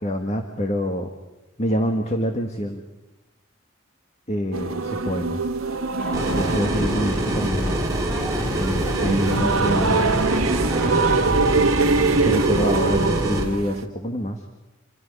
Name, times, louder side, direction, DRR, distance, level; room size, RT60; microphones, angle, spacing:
voice 1, 0.0-1.1 1.6-2.8 4.3-5.5 6.3-7.8 8.5-10.1 12.2-14.4, equal, 30° left, 4 dB, 1.7 m, -26 dB
sound 1, 4.5-13.8, right 4 dB, 75° right, 1.2 m, -24 dB
sound 2, 6.0-11.4, right 1 dB, 5° left, 2.5 m, -35 dB
sound 3, 6.1-13.4, right 1 dB, 15° right, 3.4 m, -25 dB
28.0 x 26.0 x 5.5 m, 1.0 s
head